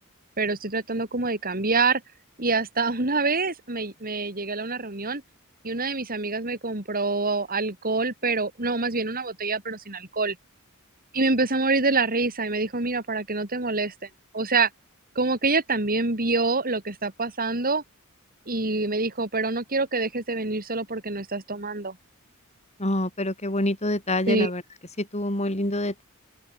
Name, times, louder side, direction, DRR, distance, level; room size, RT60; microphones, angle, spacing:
voice 1, 0.4-2.0 2.4-5.2 5.6-10.4 11.1-14.1 14.3-14.7 15.2-17.8 18.5-22.0 24.3-24.5, right 3 dB, 40° right, 4.0 m, -26 dB
voice 2, 22.8-24.6 25.0-26.0, left 1 dB, 30° left, 5.8 m, -26 dB
open air
head